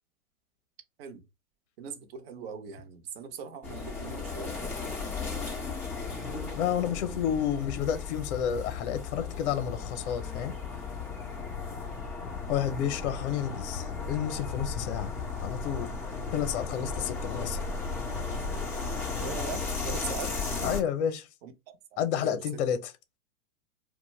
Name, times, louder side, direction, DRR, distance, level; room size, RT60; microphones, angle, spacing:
voice 1, 1.8-4.8 19.2-20.8 21.4-21.5 21.9-22.6, right 6 dB, 45° right, 0.7 m, -41 dB
sound 1, 3.6-20.8, left 4 dB, 5° left, 0.4 m, -35 dB
voice 2, 6.6-10.5 12.5-15.9 16.3-17.6 20.6-21.2 22.0-22.9, left 9 dB, 50° left, 0.6 m, -30 dB
2.4 x 2.2 x 3.0 m
hypercardioid pair, 130°, 43 cm